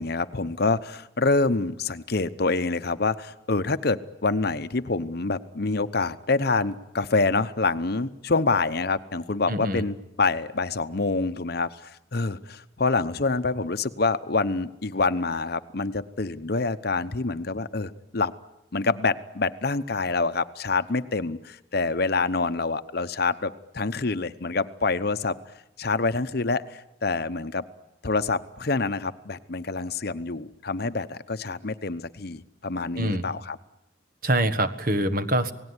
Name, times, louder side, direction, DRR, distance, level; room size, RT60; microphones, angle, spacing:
voice 1, 0.0-18.3 18.7-25.4 25.8-27.6 28.0-33.6, left 3 dB, 50° left, 12 dB, 0.9 m, -26 dB
voice 2, 9.5-9.8 33.0-33.3 34.2-35.5, right 1 dB, 45° right, 10 dB, 1.5 m, -24 dB
28.0 x 18.5 x 9.7 m, 0.89 s
head